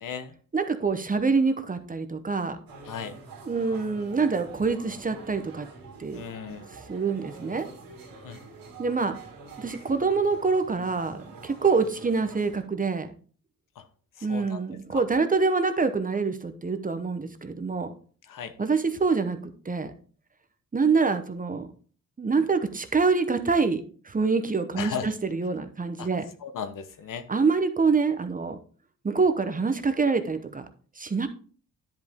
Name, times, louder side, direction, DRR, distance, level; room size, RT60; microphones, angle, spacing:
voice 1, 0.0-0.3 2.8-3.2 6.1-6.7 8.2-8.4 13.8-13.9 14.2-14.6 14.9-15.0 18.3-18.5 24.8-25.1 26.0-26.1 26.4-27.3, left 7 dB, 65° left, 11 dB, 1.0 m, -36 dB
voice 2, 0.5-2.6 3.4-5.7 6.0-6.2 6.9-7.6 8.8-9.2 9.6-13.1 14.2-17.9 18.6-19.9 20.7-21.7 22.2-26.3 27.3-28.6 29.0-30.6 31.0-31.3, right 4 dB, 25° right, 9 dB, 0.8 m, -25 dB
sound 1, 2.7-12.6, right 4 dB, 75° right, 2.4 m, -46 dB
10.5 x 5.1 x 3.5 m, 0.42 s
cardioid pair, 100°, 34 cm